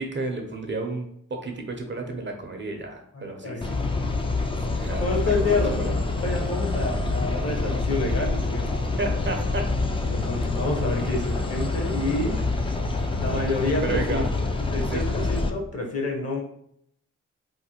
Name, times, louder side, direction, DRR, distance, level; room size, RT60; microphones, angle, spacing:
voice 1, 0.0-3.8 4.7-5.1 5.4-5.9 9.0-9.6 12.3-12.4 13.8-14.3 14.8-15.2, right 2 dB, 35° right, 3 dB, 0.6 m, -32 dB
voice 2, 3.1-3.6 5.0-8.9 10.1-12.4 13.2-14.3 14.7-16.4, left 2 dB, 50° left, 1 dB, 0.9 m, -28 dB
sound 1, 3.6-15.5, left 3 dB, 15° left, 0.4 m, -26 dB
3.1 x 2.1 x 2.9 m, 0.70 s
cardioid pair, 55°, 32 cm